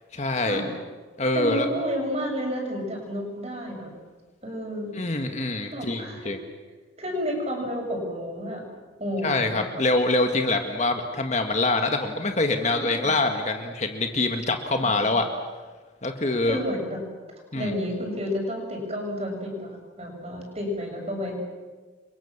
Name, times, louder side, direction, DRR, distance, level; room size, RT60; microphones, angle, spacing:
voice 1, 0.1-0.6 1.2-1.7 4.9-6.4 9.2-15.3 16.0-16.6 17.5-17.7, left 2 dB, 35° left, 5 dB, 1.8 m, -25 dB
voice 2, 1.3-3.9 4.4-5.0 5.7-6.3 7.0-8.7 9.0-9.6 12.7-13.1 16.4-17.0 17.3-21.4, equal, 35° right, 1 dB, 7.1 m, -31 dB
29.5 x 24.0 x 7.3 m, 1.3 s
head